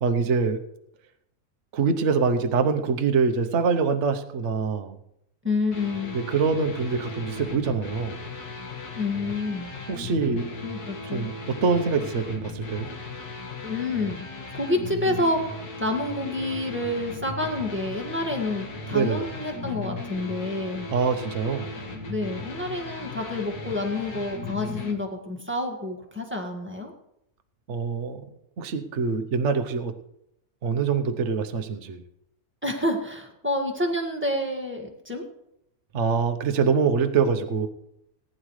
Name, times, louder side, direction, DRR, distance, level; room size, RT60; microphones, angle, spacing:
voice 1, 0.0-0.6 1.7-5.0 6.1-8.2 9.9-10.4 11.1-12.9 18.9-19.3 20.9-21.7 27.7-28.2 28.6-29.9 30.6-32.0 35.9-37.7, right 5 dB, 55° right, 7 dB, 1.1 m, -24 dB
voice 2, 5.4-6.2 8.9-9.7 10.6-11.3 13.6-14.3 14.5-20.9 22.1-26.9 32.6-35.2, left 2 dB, 10° right, 1 dB, 1.7 m, -28 dB
sound 1, 5.7-24.9, left 3 dB, 75° left, 2.2 m, -37 dB
19.0 x 10.0 x 3.2 m, 0.78 s
omnidirectional pair, 1.7 m